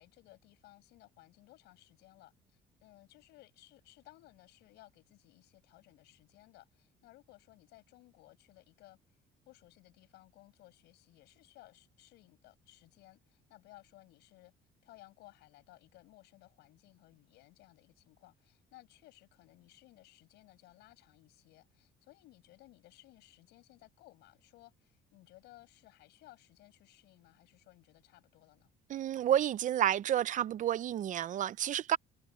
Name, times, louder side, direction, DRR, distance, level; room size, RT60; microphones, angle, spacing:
voice 1, 0.0-9.2 9.5-14.5 14.8-28.7, left 18 dB, 85° left, 7.1 m, -60 dB
voice 2, 28.9-32.0, right 11 dB, 50° right, 0.5 m, -30 dB
cardioid pair, 110°, 17 cm